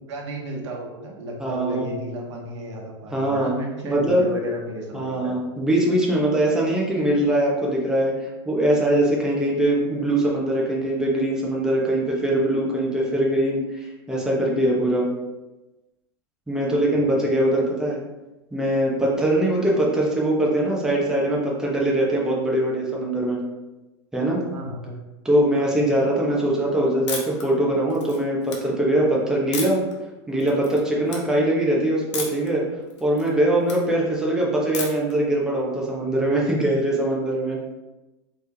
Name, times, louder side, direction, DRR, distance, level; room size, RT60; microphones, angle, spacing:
voice 1, 0.1-5.4 16.9-17.3 24.5-25.0 25.5-25.7, right 1 dB, 80° right, 0 dB, 1.0 m, -33 dB
voice 2, 1.4-1.9 3.1-3.5 3.8-4.2 4.9-15.1 16.5-18.0 18.5-23.4 24.1-24.5 25.2-29.8 30.3-32.6 33.0-37.6, right 1 dB, 5° right, -4 dB, 0.9 m, -22 dB
sound 1, 27.1-27.4 27.9-28.6 29.5-29.9 30.4-30.8 31.1-31.2 32.1-32.5 32.9-33.8 34.7-35.1, left 4 dB, 85° left, 1.0 m, -32 dB
4.5 x 3.3 x 2.8 m, 1.1 s
hypercardioid pair, 120°, 15 cm